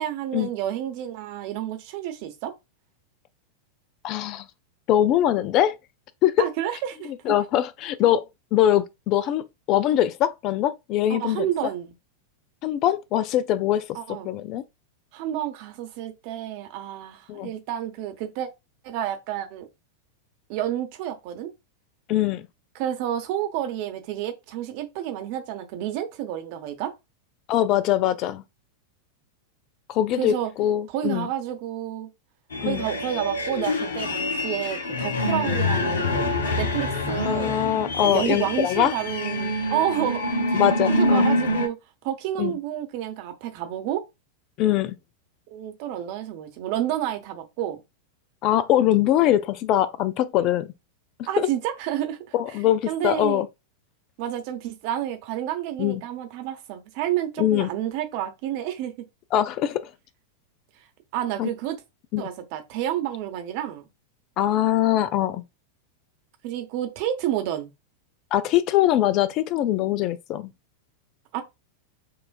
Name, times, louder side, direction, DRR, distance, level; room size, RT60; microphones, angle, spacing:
voice 1, 0.0-2.5 6.4-7.1 11.1-11.9 13.9-14.3 15.1-18.5 18.8-19.7 20.5-21.5 22.7-26.9 30.2-30.5 30.9-32.1 32.6-37.6 38.0-40.6 40.9-41.8 42.0-44.1 45.5-47.8 51.3-52.2 52.5-52.6 52.9-53.4 54.2-58.9 61.1-61.8 62.2-63.9 66.4-67.7 71.3-71.4, right 11 dB, 45° right, 0.8 m, -30 dB
voice 2, 4.0-4.5 4.9-5.8 6.2-6.4 7.3-8.3 8.5-11.5 12.6-14.6 17.3-17.5 22.1-22.4 27.5-28.4 29.9-31.3 32.6-32.8 37.2-38.9 40.5-41.3 42.4-42.5 44.6-45.0 48.4-50.7 51.4-51.5 52.3-53.5 55.8-56.0 57.4-57.7 59.3-59.8 61.4-61.5 62.1-62.3 64.4-65.4 68.3-70.5, left 12 dB, 40° left, 0.3 m, -22 dB
sound 1, 32.5-41.7, left 2 dB, 65° left, 0.7 m, -26 dB
6.4 x 2.4 x 2.4 m
figure-of-eight pair, 90°, 0 cm